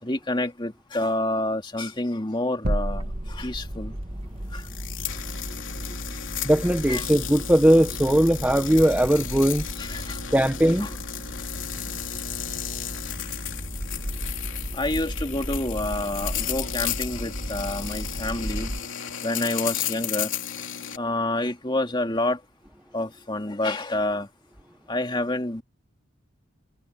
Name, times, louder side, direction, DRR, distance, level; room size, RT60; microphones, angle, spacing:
voice 1, 0.0-3.9 4.5-4.6 6.9-7.1 9.8-10.2 10.6-10.9 14.7-18.7 19.2-20.3 21.0-22.4 22.9-24.3 24.9-25.6, left 1 dB, 25° left, 2.4 m, -28 dB
sound 1, 2.6-4.2, right 1 dB, 50° right, 1.5 m, -29 dB
sound 2, 2.9-18.8, equal, 30° right, 1.6 m, -35 dB
sound 3, 4.6-21.0, left 10 dB, 65° left, 3.3 m, -34 dB
voice 2, 6.4-9.7 10.3-10.9, equal, 5° right, 0.8 m, -19 dB
head